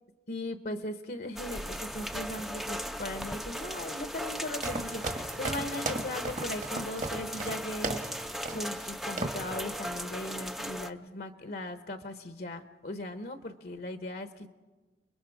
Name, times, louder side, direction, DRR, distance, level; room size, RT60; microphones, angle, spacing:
voice 1, 0.3-14.5, left 1 dB, 60° left, 9 dB, 1.0 m, -38 dB
sound 1, 1.4-10.9, equal, ahead, 0.6 m, -37 dB
sound 2, 4.6-8.1 8.5-8.9 9.2-9.5, right 2 dB, 45° right, 1.5 m, -36 dB
30.0 x 22.0 x 4.9 m, 1.3 s
head